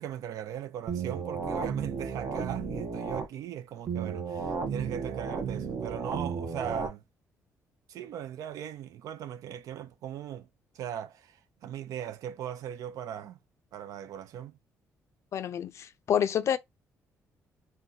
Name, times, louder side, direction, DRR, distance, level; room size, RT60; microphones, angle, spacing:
voice 1, 0.0-7.0 7.9-10.5 10.7-13.4 13.7-14.6, right 10 dB, 75° right, 0.5 m, -39 dB
sound 1, 0.9-3.3 3.9-6.9, right 5 dB, 45° right, 0.7 m, -33 dB
voice 2, 15.3-16.6, left 9 dB, 55° left, 0.4 m, -28 dB
2.7 x 2.2 x 3.7 m
cardioid pair, 110°, 6 cm